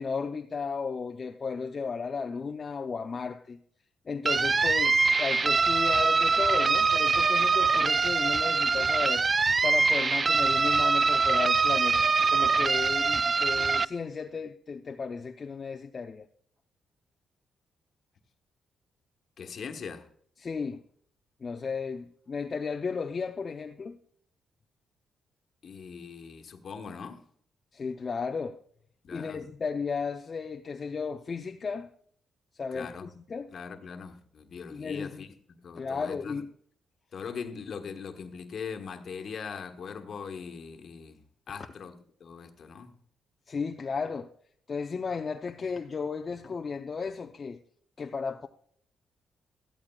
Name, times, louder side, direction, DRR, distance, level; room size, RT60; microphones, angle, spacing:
voice 1, 0.0-3.6 4.1-9.3 9.6-16.3 20.4-20.8 21.4-24.0 27.7-28.6 29.1-31.9 32.5-33.5 34.7-35.2 35.8-36.5 43.5-44.3 44.7-47.6 48.0-48.5, left 5 dB, 45° left, 0.6 m, -34 dB
sound 1, 4.3-13.9, right 4 dB, 40° right, 0.3 m, -24 dB
voice 2, 19.4-20.1 25.6-27.2 29.0-29.4 32.7-33.1 33.5-36.4 37.1-41.9 42.2-42.9, left 6 dB, 60° left, 1.3 m, -41 dB
14.5 x 13.0 x 2.3 m
cardioid pair, 70°, 0 cm